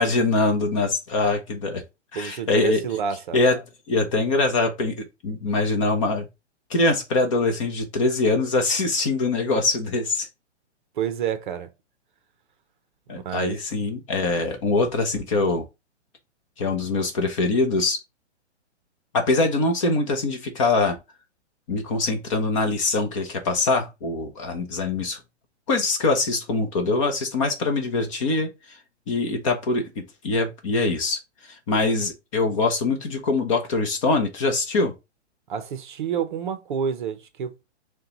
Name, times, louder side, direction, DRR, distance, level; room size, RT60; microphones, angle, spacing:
voice 1, 0.0-1.8 2.1-2.8 3.3-3.6 3.9-6.3 6.7-10.3 13.1-15.6 16.6-18.0 19.1-21.0 21.7-25.2 25.7-28.8 29.1-34.9, left 3 dB, 30° left, 0.7 m, -23 dB
voice 2, 2.1-3.4 11.0-11.7 13.1-13.6 35.5-37.5, right 8 dB, 45° right, 0.6 m, -29 dB
6.4 x 2.2 x 2.9 m
hypercardioid pair, 155°, 35 cm